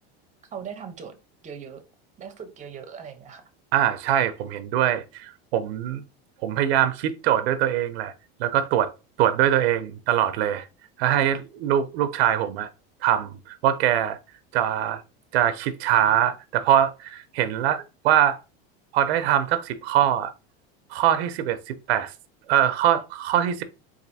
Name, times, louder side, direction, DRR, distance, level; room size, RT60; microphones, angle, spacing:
voice 1, 0.5-1.2 1.4-1.8 2.2-3.4, right 7 dB, 25° right, 0.7 m, -39 dB
voice 2, 3.7-6.0 6.4-8.1 8.4-8.9 9.2-10.7 11.0-12.7 13.0-14.2 14.5-15.0 15.3-18.4 18.9-20.3 20.9-22.1 22.5-23.6, right 11 dB, 85° right, 0.5 m, -23 dB
4.0 x 2.5 x 2.6 m
supercardioid pair, 120°, 30 cm